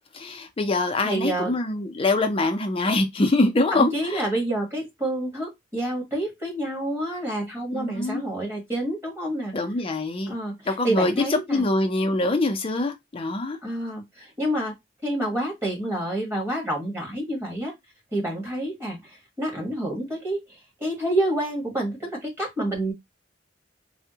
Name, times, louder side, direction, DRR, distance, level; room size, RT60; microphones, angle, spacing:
voice 1, 0.1-4.3 7.7-8.3 9.5-10.3 10.7-13.6, left 2 dB, 30° left, 0.5 m, -24 dB
voice 2, 1.0-1.5 3.7-9.6 10.3-11.7 13.6-14.7 15.0-17.7 18.1-20.4 20.8-22.9, right 1 dB, 15° right, 1.2 m, -28 dB
3.4 x 2.1 x 2.7 m
head